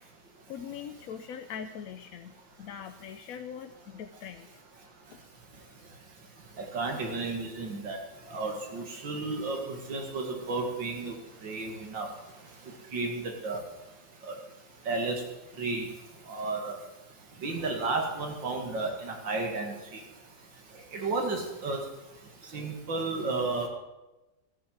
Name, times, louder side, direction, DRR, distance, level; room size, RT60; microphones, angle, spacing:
voice 1, 0.5-4.5 5.1-5.2, left 8 dB, 65° left, 8 dB, 0.9 m, -42 dB
voice 2, 6.7-8.0 8.3-11.1 11.4-12.1 12.9-13.6 14.3-14.4 14.9-15.2 15.6-15.9 16.3-16.7 17.4-20.0 20.9-21.8 22.5-23.7, right 3 dB, 75° right, 2 dB, 2.9 m, -32 dB
14.5 x 7.5 x 8.1 m, 1.0 s
omnidirectional pair, 2.1 m